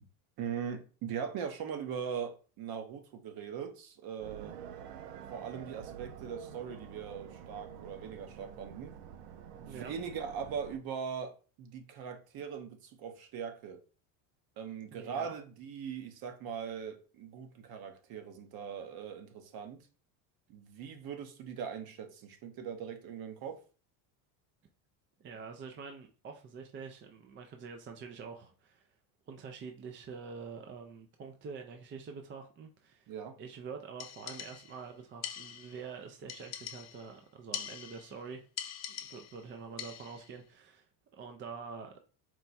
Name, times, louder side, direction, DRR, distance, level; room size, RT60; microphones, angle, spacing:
voice 1, 0.4-4.6 5.3-9.0 9.5-13.8 14.6-19.8 20.5-23.6 33.1-33.4, right 7 dB, 50° right, 0.9 m, -40 dB
sound 1, 4.2-10.8, right 9 dB, 85° right, 0.6 m, -48 dB
voice 2, 14.9-15.3 25.2-28.9 29.3-33.1 33.4-38.4 38.9-41.9, right 5 dB, 25° right, 0.4 m, -46 dB
sound 2, 34.0-34.8 35.2-35.9 36.3-37.1 37.5-38.2 38.6-39.4 39.8-40.3, left 9 dB, 35° left, 0.5 m, -43 dB
4.6 x 2.2 x 4.1 m
supercardioid pair, 100°, 47 cm